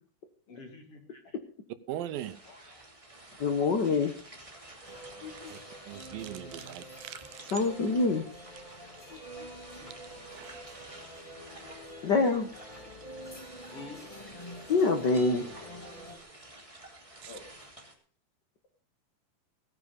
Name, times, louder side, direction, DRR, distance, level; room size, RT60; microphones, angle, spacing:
voice 1, 0.5-1.4 7.8-8.2 13.7-14.0 17.3-17.5, left 3 dB, 45° left, 3.6 m, -47 dB
voice 2, 1.9-2.4 5.2-5.6 5.9-7.5 9.1-9.2 10.3-10.8 11.6-11.7 17.2-17.4, right 12 dB, 85° right, 2.6 m, -41 dB
sound 1, 2.1-17.9, right 2 dB, 10° right, 2.3 m, -51 dB
voice 3, 3.4-4.1 5.2-5.6 7.5-8.2 12.0-12.5 14.7-15.5, left 3 dB, 60° left, 1.1 m, -26 dB
sound 2, 4.9-16.2, equal, 15° left, 1.8 m, -47 dB
17.0 x 10.0 x 5.3 m
omnidirectional pair, 4.0 m